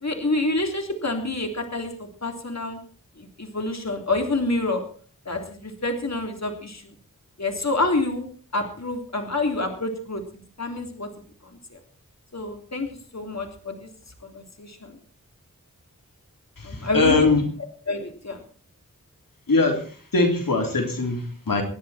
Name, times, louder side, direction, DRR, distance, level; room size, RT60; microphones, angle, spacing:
voice 1, 0.0-2.8 3.2-4.8 5.3-6.8 7.4-8.3 8.5-10.2 10.6-11.1 12.3-13.9 14.2-14.9 16.6-17.4 17.9-18.4, left 2 dB, 55° left, 4 dB, 3.5 m, -27 dB
voice 2, 16.6-17.4 19.5-19.8 20.1-21.6, left 3 dB, 85° left, 3 dB, 3.6 m, -21 dB
26.5 x 10.5 x 4.4 m, 0.42 s
wide cardioid pair, 50°, 33 cm